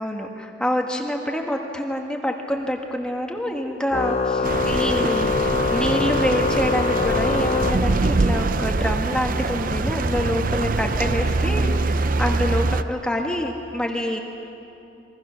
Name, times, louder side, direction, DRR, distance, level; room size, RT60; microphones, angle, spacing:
voice 1, 0.0-14.2, equal, 5° left, 1 dB, 1.3 m, -26 dB
Organ, 3.9-8.4, left 4 dB, 30° left, 0.6 m, -24 dB
sound 1, 4.4-12.8, right 3 dB, 45° right, 0.6 m, -23 dB
27.5 x 22.5 x 6.3 m, 2.8 s
head